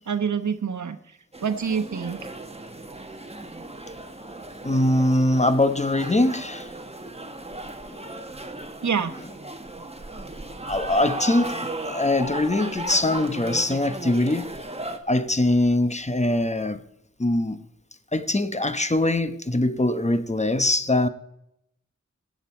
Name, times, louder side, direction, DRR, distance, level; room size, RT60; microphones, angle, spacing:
voice 1, 0.0-2.2 8.8-9.1, right 6 dB, 75° right, 1.1 m, -27 dB
sound 1, 1.3-15.0, right 2 dB, 20° right, 1.4 m, -36 dB
voice 2, 4.6-6.7 7.9-8.2 10.7-14.6 15.1-16.8 17.2-17.6 18.1-21.1, left 1 dB, 25° left, 1.0 m, -22 dB
18.5 x 8.2 x 4.4 m
wide cardioid pair, 55°, 29 cm